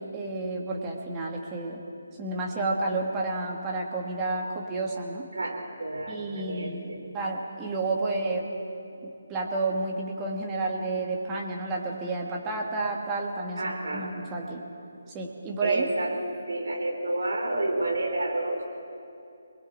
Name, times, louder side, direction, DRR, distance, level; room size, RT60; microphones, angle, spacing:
voice 1, 0.0-1.8 2.2-5.3 6.1-6.9 7.1-8.5 9.0-14.6 15.1-15.9, right 3 dB, 20° right, -1 dB, 2.3 m, -31 dB
voice 2, 5.3-7.0 13.6-14.1 15.6-16.1 16.5-18.6, right 2 dB, 70° right, 1 dB, 4.1 m, -30 dB
28.5 x 21.0 x 4.4 m, 2.6 s
figure-of-eight pair, 150°, 0 cm